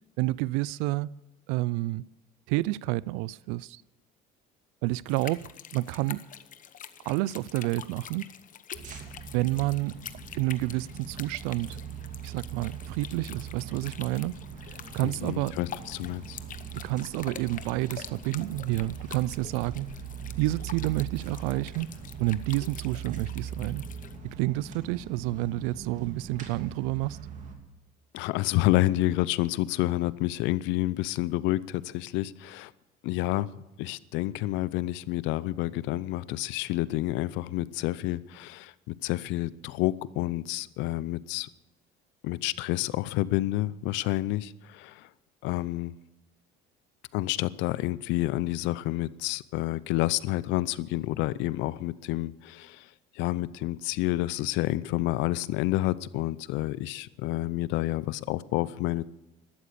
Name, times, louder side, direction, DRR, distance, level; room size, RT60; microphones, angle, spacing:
voice 1, 0.2-1.1 1.5-2.0 2.5-3.8 4.8-6.2 7.1-8.3 9.3-10.0 10.3-11.8 12.2-15.5 16.7-19.9 20.4-21.9 22.2-23.8 24.2-27.2, right 18 dB, 85° right, 0.4 m, -29 dB
sound 1, 5.1-24.2, left 9 dB, 45° left, 1.0 m, -46 dB
sound 2, 8.7-27.6, right 7 dB, 40° right, 2.9 m, -41 dB
voice 2, 15.0-16.4 28.1-32.7 33.0-33.5 33.8-41.5 42.2-45.1 45.4-45.9 47.1-52.9 53.1-59.0, left 17 dB, 75° left, 0.6 m, -29 dB
13.0 x 12.5 x 6.8 m
supercardioid pair, 100°, 19 cm